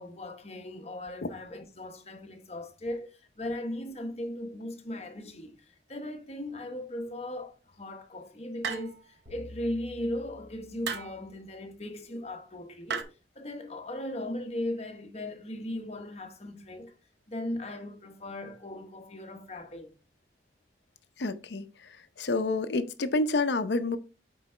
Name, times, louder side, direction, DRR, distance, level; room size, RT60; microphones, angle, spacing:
voice 1, 0.0-16.9 17.3-19.9, left 1 dB, 35° left, 1.0 m, -38 dB
sound 1, 8.6-9.2 10.8-11.2 12.9-13.0, right 5 dB, 75° right, 0.9 m, -34 dB
sound 2, 9.3-11.7, left 1 dB, 35° right, 2.3 m, -50 dB
voice 2, 21.2-21.7 22.2-24.0, left 2 dB, 75° left, 0.7 m, -28 dB
8.2 x 4.7 x 3.3 m
head